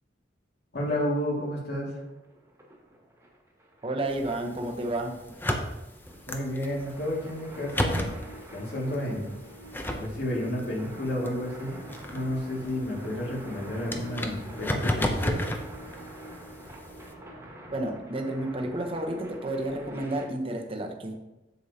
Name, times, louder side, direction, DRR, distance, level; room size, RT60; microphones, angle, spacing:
voice 1, 0.7-2.0 6.3-8.1 8.5-9.3 9.9-11.8 12.1-15.4, left 1 dB, 65° left, -3 dB, 2.3 m, -31 dB
sound 1, 1.9-20.3, right 1 dB, 15° right, 1.5 m, -47 dB
voice 2, 3.8-5.2 17.7-21.1, right 1 dB, 30° right, 2 dB, 0.9 m, -31 dB
sound 2, 4.1-17.1, left 1 dB, 10° left, 0.6 m, -35 dB
sound 3, 7.4-17.3, right 1 dB, 80° right, 0.7 m, -49 dB
8.0 x 7.0 x 2.9 m, 0.99 s
head